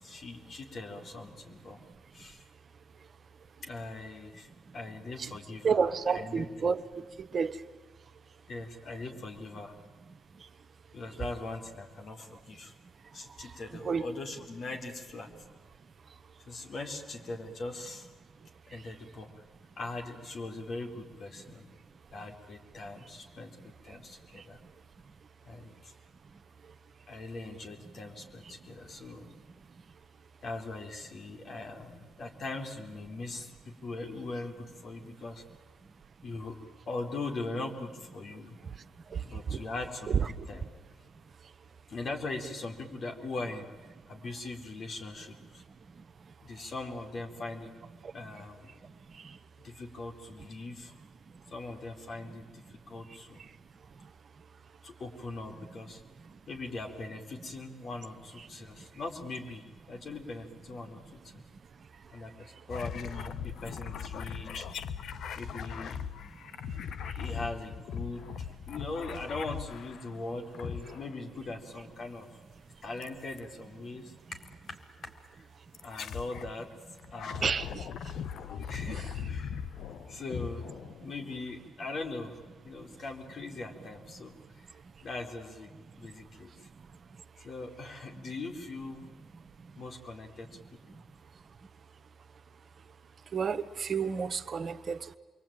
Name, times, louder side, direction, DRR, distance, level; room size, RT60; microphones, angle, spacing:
voice 1, 0.0-1.8 2.1-2.5 3.6-6.7 8.5-9.7 10.9-12.7 13.1-15.3 16.5-18.1 18.7-19.4 19.8-21.7 22.1-24.6 25.4-25.9 27.1-29.3 30.4-33.5 33.8-35.4 36.2-36.5 36.9-38.5 39.2-40.6 41.9-43.7 44.1-45.6 46.4-47.7 48.1-48.7 49.6-50.9 51.5-53.4 54.8-56.0 56.5-61.4 62.1-64.7 65.4-66.0 67.1-68.3 68.7-72.3 72.8-74.4 74.7-74.8 75.0-75.4 75.8-76.7 77.1-77.5 78.7-79.6 80.1-80.7 81.0-82.3 82.6-84.3 85.0-85.7 86.0-86.7 87.4-89.1 89.8-90.5 90.9-91.0, left 2 dB, 55° left, 4.4 m, -40 dB
voice 2, 5.6-6.8 7.2-7.6 13.7-14.1 39.1-39.2 39.5-39.6 40.1-40.3 49.2-49.3 77.4-77.9 78.9-79.0 93.3-95.2, right 6 dB, 50° right, 1.0 m, -30 dB
sound 1, 62.7-70.1 70.5-71.3 73.0-73.4 74.4-74.6 75.7-76.5 77.0-81.3, left 7 dB, 70° left, 0.9 m, -39 dB
27.5 x 23.0 x 9.1 m
supercardioid pair, 75°, 0 cm